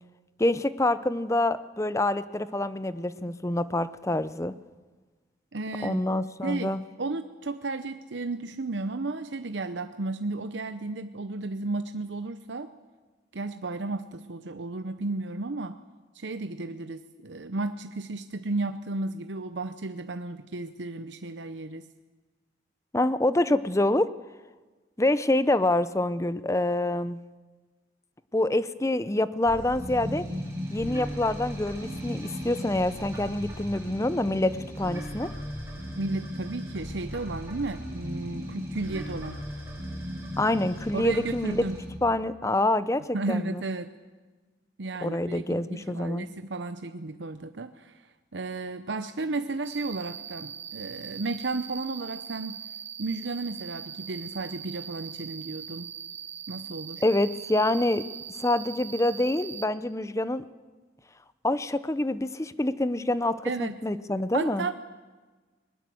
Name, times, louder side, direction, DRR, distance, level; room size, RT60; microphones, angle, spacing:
voice 1, 0.4-4.5 5.8-6.8 22.9-24.1 25.0-27.2 28.3-30.3 30.7-35.3 40.4-41.6 42.0-43.6 45.0-46.3 57.0-58.0 58.4-60.4 61.4-64.7, left 1 dB, 15° left, 14 dB, 0.7 m, -26 dB
voice 2, 5.5-6.0 6.4-12.7 13.3-15.8 16.1-21.9 36.0-39.4 40.9-41.8 43.1-43.9 44.8-52.6 53.0-55.9 56.5-57.0 63.4-63.8 64.3-64.7, right 3 dB, 80° right, 9 dB, 0.8 m, -33 dB
sound 1, 29.5-41.9, equal, 15° right, 6.3 m, -37 dB
Cricket, 49.6-59.6, right 8 dB, 40° right, 1.2 m, -41 dB
21.0 x 20.5 x 7.8 m, 1.3 s
head